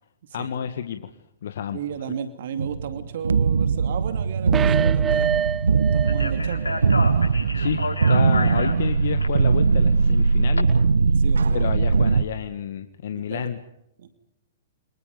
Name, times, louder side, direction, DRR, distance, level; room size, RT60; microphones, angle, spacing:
voice 1, 0.3-1.1 1.4-1.8 7.5-10.8 11.1-11.2 11.5-13.6, left 9 dB, 65° left, 9 dB, 1.7 m, -30 dB
voice 2, 1.7-5.3 5.9-6.8 11.2-12.1 13.1-13.5 14.0-14.1, right 8 dB, 60° right, 8 dB, 2.6 m, -34 dB
sound 1, 2.6-12.2, right 5 dB, 80° right, 1.1 m, -20 dB
sound 2, 4.5-6.4 6.7-6.8, right 8 dB, 20° right, 0.8 m, -26 dB
Speech, 6.0-10.6, left 3 dB, 90° left, 5.5 m, -32 dB
29.5 x 26.5 x 5.3 m, 0.85 s
hypercardioid pair, 115°, 0 cm